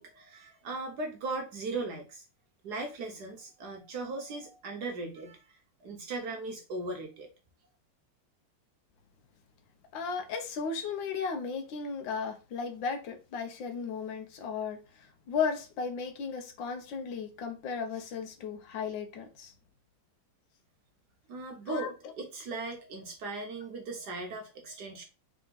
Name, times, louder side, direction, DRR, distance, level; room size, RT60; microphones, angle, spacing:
voice 1, 0.0-2.2 2.6-7.3 21.3-25.0, right 3 dB, 65° right, 1.2 m, -38 dB
voice 2, 9.9-19.5 21.7-21.9, left 5 dB, 70° left, 1.4 m, -35 dB
3.6 x 3.4 x 3.9 m
omnidirectional pair, 2.2 m